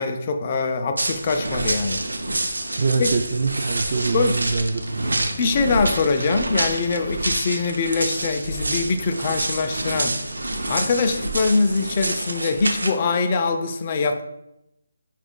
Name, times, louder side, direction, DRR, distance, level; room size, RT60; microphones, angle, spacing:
voice 1, 0.0-2.1 3.0-3.1 4.1-4.4 5.3-10.2 10.7-14.2, left 4 dB, 30° left, 6 dB, 0.4 m, -23 dB
sound 1, 1.0-12.9, right 2 dB, 80° right, 0.6 m, -27 dB
voice 2, 2.8-5.3, right 4 dB, 50° right, 2 dB, 0.3 m, -24 dB
4.8 x 2.4 x 3.7 m, 0.85 s
figure-of-eight pair, 160°, 0 cm